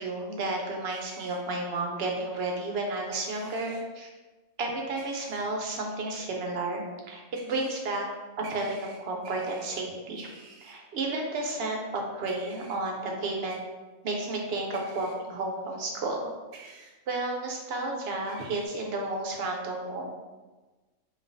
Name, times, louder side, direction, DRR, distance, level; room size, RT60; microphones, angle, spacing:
voice 1, 0.0-4.1 4.6-8.1 8.4-10.3 10.6-13.5 14.0-16.3 17.1-20.1, right 2 dB, 60° right, 1 dB, 0.7 m, -32 dB
sound 1, 0.9-1.4 3.1-3.8 5.0-5.4 7.3-7.8 8.4-9.8 10.2-10.7 12.3-12.8 13.5-13.6 14.7-15.1 16.5-16.9 18.3-18.7, right 4 dB, 75° right, 1.0 m, -50 dB
5.1 x 2.4 x 2.5 m, 1.3 s
omnidirectional pair, 1.5 m